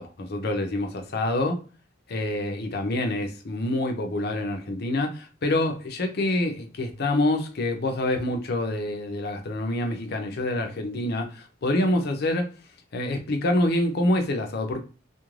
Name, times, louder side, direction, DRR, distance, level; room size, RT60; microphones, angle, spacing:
voice 1, 0.0-1.6 2.1-12.5 12.9-14.8, left 1 dB, 55° left, 0.6 m, -26 dB
2.4 x 2.1 x 3.1 m
head